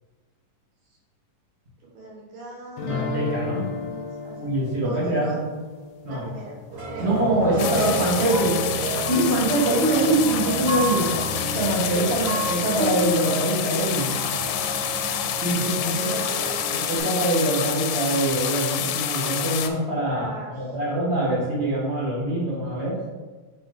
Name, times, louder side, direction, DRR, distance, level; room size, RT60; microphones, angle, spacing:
voice 1, 1.8-3.0 3.7-5.4 6.1-6.5 6.9-7.2 9.6-10.1 11.9-12.4 15.4-16.6 20.1-20.8, right 1 dB, 85° right, -4 dB, 3.5 m, -39 dB
sound 1, 2.8-7.7, left 5 dB, 70° left, 1.8 m, -36 dB
voice 2, 2.8-3.7 4.4-5.3 6.0-6.2 7.0-8.6 9.1-11.1 11.5-14.1 15.4-16.1 16.7-22.9, right 1 dB, 35° right, -6 dB, 1.0 m, -24 dB
sound 2, 6.7-17.0, right 2 dB, 55° right, 1.3 m, -29 dB
sound 3, 7.6-19.7, left 10 dB, 90° left, 2.2 m, -28 dB
6.6 x 4.3 x 3.9 m, 1.3 s
omnidirectional pair, 3.8 m